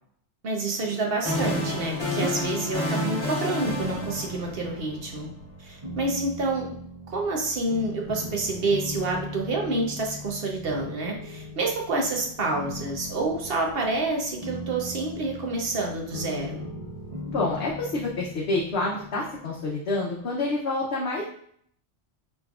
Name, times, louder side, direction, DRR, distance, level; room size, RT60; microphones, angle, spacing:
voice 1, 0.4-5.3 5.6-6.7 7.1-16.6, right 2 dB, 55° right, 1 dB, 1.0 m, -28 dB
sound 1, 0.8-5.0, left 1 dB, 25° left, 1.3 m, -29 dB
sound 2, 1.3-20.3, left 1 dB, 35° right, 0.7 m, -39 dB
voice 2, 17.3-21.2, left 2 dB, 60° left, -4 dB, 0.9 m, -28 dB
5.0 x 3.2 x 2.4 m, 0.64 s
omnidirectional pair, 1.2 m